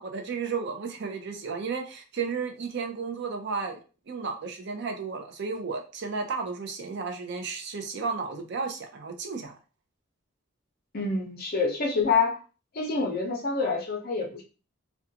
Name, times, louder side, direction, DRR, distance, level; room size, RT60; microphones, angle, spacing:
voice 1, 0.0-3.8 4.1-9.6, right 5 dB, 50° right, 4 dB, 0.4 m, -33 dB
voice 2, 10.9-12.4 12.7-14.4, left 4 dB, 45° left, 1 dB, 0.6 m, -27 dB
2.4 x 2.2 x 2.7 m, 0.34 s
head